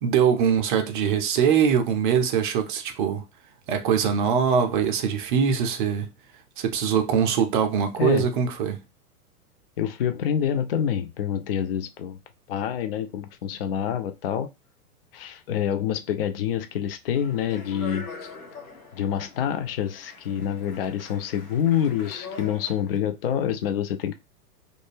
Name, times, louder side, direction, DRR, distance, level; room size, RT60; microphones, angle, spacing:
voice 1, 0.0-3.2 3.7-6.1 6.6-8.8, right 7 dB, 35° right, 0.5 m, -22 dB
voice 2, 9.8-12.2 12.5-14.5 15.1-18.3 18.9-24.1, left 9 dB, 40° left, 0.4 m, -27 dB
Speech, 17.1-23.0, left 4 dB, 65° left, 1.2 m, -43 dB
2.5 x 2.2 x 3.2 m
figure-of-eight pair, 100°, 46 cm